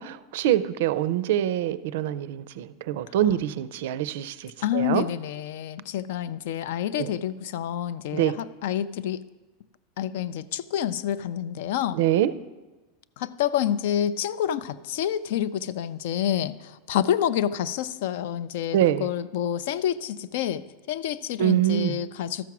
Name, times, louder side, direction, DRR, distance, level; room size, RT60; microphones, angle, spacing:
voice 1, 0.0-5.0 7.0-7.1 8.1-8.4 11.9-12.3 18.7-19.1 21.4-21.9, right 12 dB, 65° right, 15 dB, 0.4 m, -25 dB
voice 2, 4.6-9.2 10.0-12.0 13.2-22.4, left 10 dB, 60° left, 17 dB, 0.4 m, -28 dB
13.0 x 5.9 x 6.0 m, 1.2 s
supercardioid pair, 175°, 0 cm